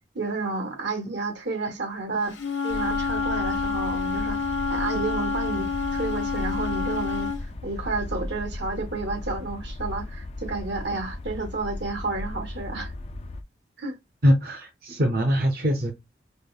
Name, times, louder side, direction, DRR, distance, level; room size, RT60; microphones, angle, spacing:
voice 1, 0.1-2.4 2.6-4.4 4.7-12.9 13.8-14.0, right 3 dB, 80° right, 1.1 m, -31 dB
Wind instrument woodwind instrument, 2.3-7.4, left 5 dB, 80° left, 0.8 m, -28 dB
sound 1, 2.7-13.4, left 1 dB, 35° left, 0.3 m, -35 dB
voice 2, 14.2-15.9, equal, 55° right, 0.7 m, -22 dB
5.1 x 2.0 x 2.3 m
head